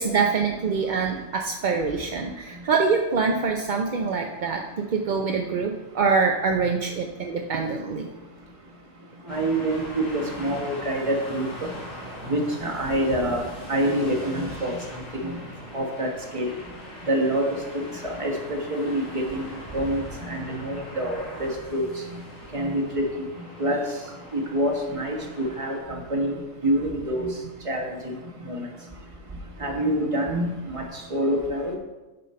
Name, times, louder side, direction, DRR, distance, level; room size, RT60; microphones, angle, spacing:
voice 1, 0.0-8.1, right 5 dB, 50° right, 2 dB, 0.6 m, -25 dB
sound 1, 9.3-25.8, left 1 dB, 90° left, 2.5 m, -41 dB
voice 2, 9.3-11.5 12.3-13.4 13.7-14.7 15.1-15.4 15.7-16.1 16.3-16.5 17.1-17.4 17.7-21.8 22.5-23.0 23.6-23.8 24.3-26.3 26.6-27.3 27.7-28.1 28.5-28.7 29.6-30.8 31.1-31.7, right 1 dB, 25° right, 0 dB, 1.3 m, -26 dB
9.3 x 5.4 x 4.3 m, 1.1 s
omnidirectional pair, 1.3 m